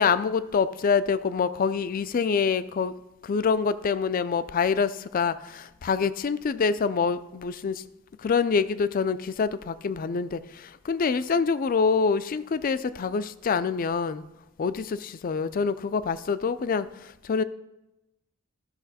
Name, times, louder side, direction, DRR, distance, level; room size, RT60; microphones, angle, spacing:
voice 1, 0.0-2.9 3.2-7.8 8.2-14.2 14.6-17.4, left 5 dB, 40° left, 14 dB, 0.4 m, -26 dB
12.5 x 5.8 x 4.1 m, 0.95 s
head